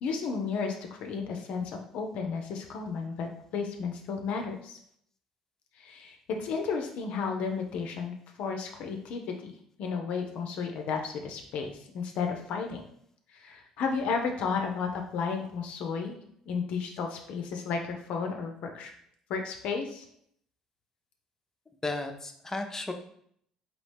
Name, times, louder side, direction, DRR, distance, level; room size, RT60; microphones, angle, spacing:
voice 1, 0.0-4.8 5.8-12.8 13.3-18.9 19.3-20.0, left 5 dB, 60° left, 3 dB, 0.5 m, -33 dB
voice 2, 21.8-22.9, left 2 dB, 20° left, 5 dB, 0.6 m, -34 dB
4.0 x 2.9 x 3.3 m, 0.67 s
hypercardioid pair, 55°, 2 cm